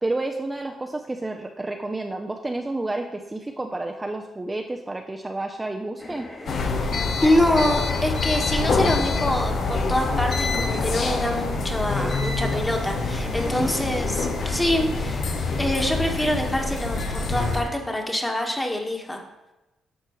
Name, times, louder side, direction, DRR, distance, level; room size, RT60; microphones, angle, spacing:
voice 1, 0.0-6.3 13.4-14.0, right 2 dB, 20° right, 3 dB, 0.6 m, -30 dB
sound 1, 6.0-17.7, left 1 dB, 40° left, 2.6 m, -39 dB
sound 2, 6.5-17.6, left 3 dB, 65° left, 0.9 m, -26 dB
voice 2, 7.2-15.3 15.6-19.2, left 1 dB, 15° left, 2 dB, 1.4 m, -25 dB
11.5 x 4.4 x 3.1 m, 0.99 s
supercardioid pair, 60°, 0 cm